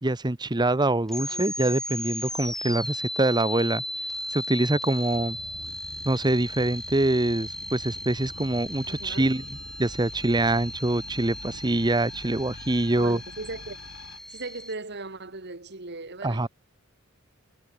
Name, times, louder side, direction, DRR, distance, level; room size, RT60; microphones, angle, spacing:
voice 1, 0.0-3.8 4.3-5.4 6.0-9.4 9.8-13.2 16.2-16.5, right 2 dB, 20° right, 0.9 m, -25 dB
sound 1, 1.1-14.7, left 1 dB, ahead, 2.0 m, -36 dB
sound 2, 5.1-14.2, left 2 dB, 80° left, 2.0 m, -45 dB
voice 2, 8.8-9.3 12.9-13.8 14.3-16.5, right 3 dB, 55° right, 2.2 m, -38 dB
head